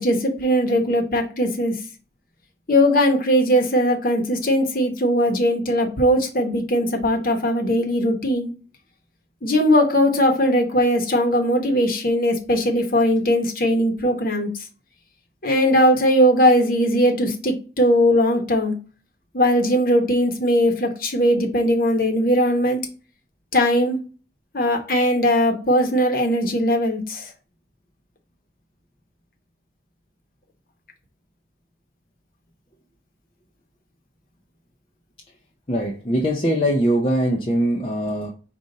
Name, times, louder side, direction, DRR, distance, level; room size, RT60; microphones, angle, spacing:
voice 1, 0.0-1.8 2.7-8.5 9.4-14.5 15.4-18.7 19.3-22.8 23.5-24.0 24.5-27.3, equal, 50° left, 3 dB, 1.0 m, -19 dB
voice 2, 35.7-38.3, equal, 30° left, 0 dB, 0.5 m, -21 dB
5.2 x 2.5 x 3.8 m, 0.36 s
head